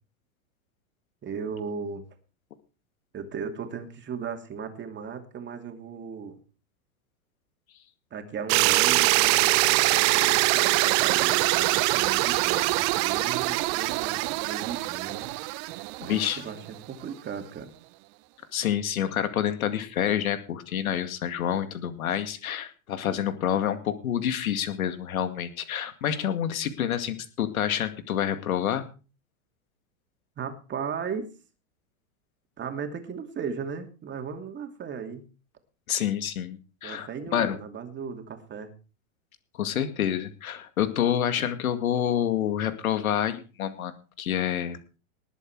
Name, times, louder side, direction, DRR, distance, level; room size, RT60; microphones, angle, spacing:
voice 1, 1.2-2.0 3.1-6.4 8.1-17.7 30.4-31.3 32.6-35.2 36.8-38.7, right 6 dB, 25° right, 6 dB, 2.7 m, -37 dB
sound 1, 8.5-16.5, right 20 dB, 50° right, 0.9 m, -23 dB
voice 2, 16.1-16.4 18.5-28.8 35.9-37.6 39.6-45.0, left 10 dB, 85° left, 10 dB, 2.2 m, -28 dB
19.5 x 8.2 x 4.7 m, 0.35 s
hypercardioid pair, 115°, 41 cm